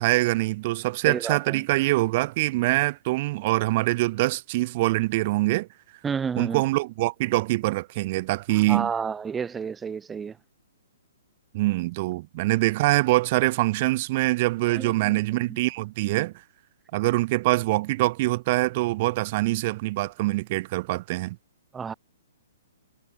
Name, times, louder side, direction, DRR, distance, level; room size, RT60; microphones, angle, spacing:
voice 1, 0.0-5.7 6.4-8.9 11.5-16.3 16.9-21.4, right 20 dB, 40° right, 4.4 m, -24 dB
voice 2, 1.0-1.6 6.0-6.6 8.5-10.4 14.7-15.6 21.7-21.9, right 6 dB, 10° right, 3.3 m, -31 dB
hypercardioid pair, 135°, 0 cm